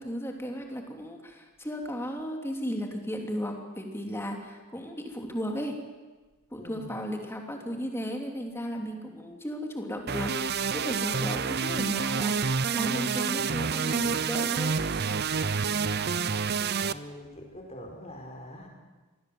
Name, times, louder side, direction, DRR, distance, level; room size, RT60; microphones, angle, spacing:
voice 1, 0.0-5.8 6.5-10.3 10.7-14.8, equal, 10° left, 2 dB, 3.1 m, -35 dB
voice 2, 6.6-6.9 16.8-18.7, equal, 30° left, 2 dB, 5.0 m, -44 dB
sound 1, 10.1-16.9, right 5 dB, 50° right, 0.7 m, -28 dB
26.5 x 20.0 x 8.0 m, 1.3 s
head